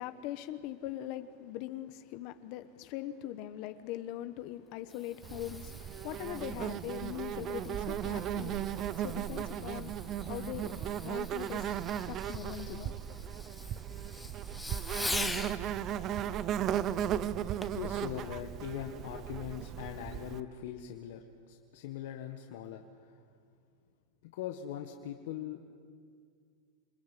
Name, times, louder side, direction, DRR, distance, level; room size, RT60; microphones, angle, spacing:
voice 1, 0.0-11.8 12.1-12.9, left 13 dB, 45° left, 1.2 m, -41 dB
Fireworks, 4.6-15.6 17.6-17.9 18.5-18.6, left 2 dB, 5° left, 1.1 m, -44 dB
Insect, 5.2-20.4, right 10 dB, 30° right, 0.7 m, -36 dB
voice 2, 17.7-23.2 24.2-25.6, left 10 dB, 65° left, 1.7 m, -41 dB
27.5 x 22.0 x 9.3 m
supercardioid pair, 160°, 0 cm